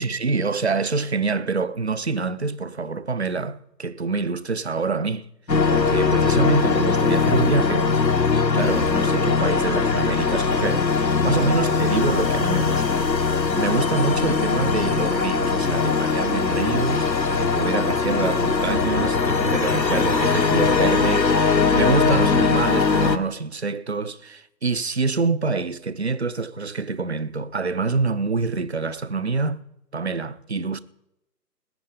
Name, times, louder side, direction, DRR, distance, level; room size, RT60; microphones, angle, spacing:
voice 1, 0.0-5.3 5.7-29.7 29.9-30.8, right 4 dB, 40° right, 0.6 m, -26 dB
sound 1, 5.5-23.2, left 4 dB, 90° left, 1.3 m, -21 dB
19.0 x 8.5 x 5.1 m
figure-of-eight pair, 150°, 49 cm